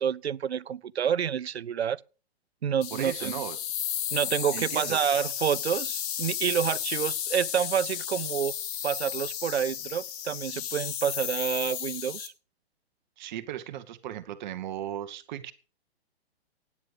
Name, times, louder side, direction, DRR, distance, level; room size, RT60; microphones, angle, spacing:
voice 1, 0.0-2.0 2.6-3.4 4.1-8.5 8.8-12.3, right 8 dB, 80° right, 0.7 m, -28 dB
sound 1, 2.8-12.3, left 10 dB, 35° left, 2.1 m, -33 dB
voice 2, 2.9-3.6 4.5-5.0 6.9-7.0 13.2-15.5, right 11 dB, 45° right, 1.3 m, -36 dB
17.5 x 9.7 x 5.1 m
hypercardioid pair, 125°, 32 cm